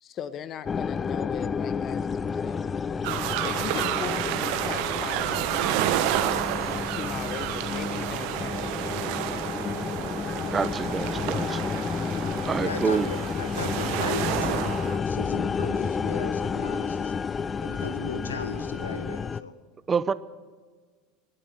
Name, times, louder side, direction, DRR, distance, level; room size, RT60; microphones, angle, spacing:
voice 1, 0.0-3.0 3.4-6.0 6.6-9.2, left 9 dB, 40° left, 1.0 m, -39 dB
sound 1, 0.7-19.4, left 6 dB, 25° left, 0.4 m, -31 dB
sound 2, 3.0-15.0, right 12 dB, 60° right, 1.2 m, -30 dB
voice 2, 10.5-11.6 12.5-13.1 19.9-20.1, right 6 dB, 25° right, 0.7 m, -27 dB
voice 3, 12.6-17.1 17.6-19.5, left 4 dB, 85° left, 1.4 m, -37 dB
20.5 x 8.8 x 7.8 m
hypercardioid pair, 80°, 0 cm